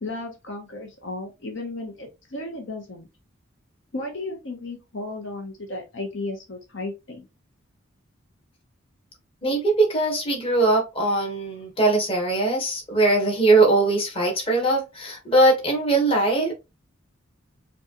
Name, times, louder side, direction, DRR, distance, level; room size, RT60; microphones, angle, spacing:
voice 1, 0.0-3.1 3.9-7.3, left 2 dB, 60° left, 3 dB, 0.9 m, -34 dB
voice 2, 9.4-16.5, right 2 dB, 25° left, 0 dB, 1.3 m, -21 dB
5.2 x 2.3 x 2.9 m, 0.25 s
head